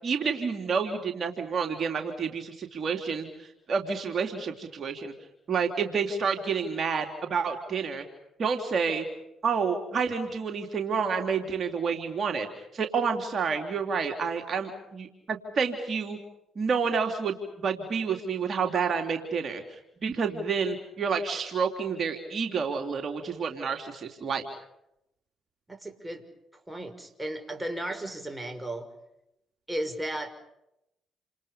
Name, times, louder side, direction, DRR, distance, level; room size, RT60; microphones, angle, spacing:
voice 1, 0.0-5.1 5.5-8.0 8.4-9.1 9.4-12.5 12.7-16.2 16.5-24.4, right 5 dB, 50° right, 4 dB, 3.4 m, -29 dB
voice 2, 25.7-26.2 26.7-28.9 29.7-30.3, right 1 dB, 10° right, 6 dB, 6.0 m, -34 dB
29.5 x 28.0 x 5.3 m, 0.84 s
supercardioid pair, 55°, 0 cm